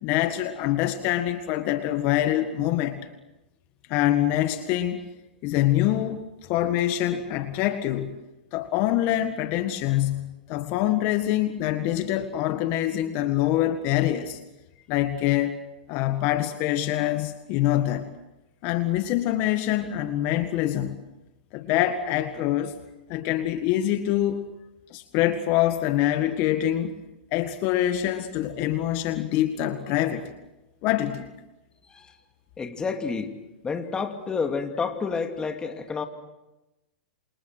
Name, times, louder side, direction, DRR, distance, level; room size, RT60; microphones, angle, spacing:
voice 1, 0.0-3.0 3.9-5.0 5.4-8.2 8.5-14.4 14.9-15.6 15.9-18.1 18.6-21.0 21.5-22.7 23.1-24.4 24.9-27.0 27.3-30.3 30.8-31.3, left 13 dB, 45° left, 9 dB, 1.8 m, -25 dB
voice 2, 32.6-33.3 33.6-36.0, left 5 dB, 15° left, 6 dB, 2.7 m, -29 dB
28.5 x 27.5 x 6.2 m, 1.0 s
hypercardioid pair, 120°, 5 cm